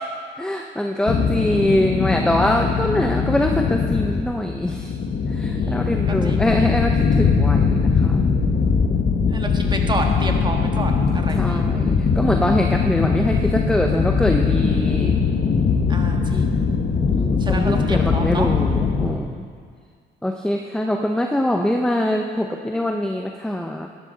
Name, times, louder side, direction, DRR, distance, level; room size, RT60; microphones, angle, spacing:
voice 1, 0.4-4.9 5.3-8.2 11.3-15.2 17.2-19.4 20.2-23.9, left 1 dB, 5° left, 3 dB, 0.6 m, -23 dB
sound 1, 1.1-19.2, left 5 dB, 50° left, 1.2 m, -20 dB
voice 2, 5.5-6.7 9.3-11.7 15.9-16.6 17.4-18.5, right 2 dB, 20° right, 2 dB, 1.6 m, -30 dB
12.5 x 11.5 x 4.0 m, 2.1 s
cardioid pair, 90°, 20 cm